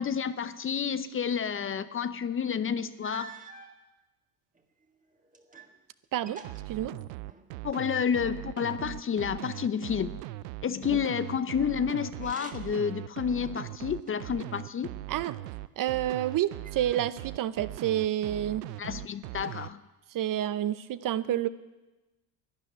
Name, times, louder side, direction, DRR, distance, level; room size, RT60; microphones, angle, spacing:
voice 1, 0.0-3.3 7.6-10.2 10.6-14.9 18.8-19.8, left 7 dB, 25° left, 13 dB, 0.7 m, -30 dB
sound 1, 2.4-2.5 3.0-3.8 4.5-5.8 6.0-7.6 12.1-12.9 13.4-14.4 15.1-15.9 16.6-17.4, right 5 dB, 15° right, 1.8 m, -50 dB
sound 2, 6.4-19.7, right 17 dB, 85° right, 0.6 m, -40 dB
voice 2, 15.8-18.6 20.1-21.5, right 12 dB, 45° right, 15 dB, 0.7 m, -29 dB
12.0 x 10.0 x 9.9 m, 1.1 s
hypercardioid pair, 85°, 47 cm